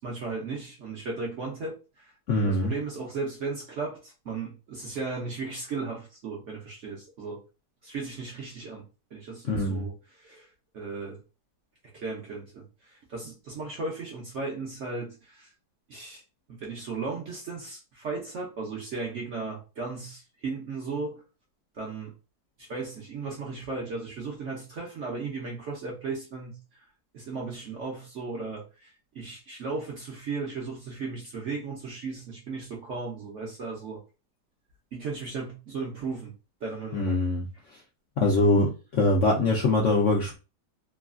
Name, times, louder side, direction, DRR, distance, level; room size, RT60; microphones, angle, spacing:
voice 1, 0.0-2.1 2.4-7.4 7.8-11.2 11.9-15.5 15.9-16.2 16.5-21.2 21.7-22.1 22.6-26.9 27.1-34.0 34.9-36.3 36.6-37.2, right 4 dB, 65° right, -1 dB, 0.8 m, -36 dB
voice 2, 2.3-2.7 9.5-9.8 36.9-37.5 38.2-40.4, left 2 dB, 70° left, -1 dB, 0.7 m, -23 dB
3.1 x 2.3 x 2.4 m, 0.31 s
omnidirectional pair, 1.9 m